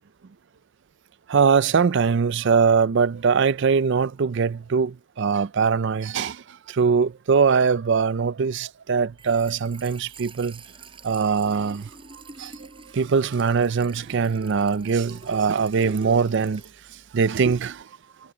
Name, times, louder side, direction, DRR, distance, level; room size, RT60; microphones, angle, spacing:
voice 1, 1.3-10.6 11.0-12.7 12.9-17.9, right 5 dB, 55° right, 0.4 m, -22 dB
Trickle dribble / Fill (with liquid), 9.0-17.8, right 3 dB, 25° right, 5.2 m, -47 dB
head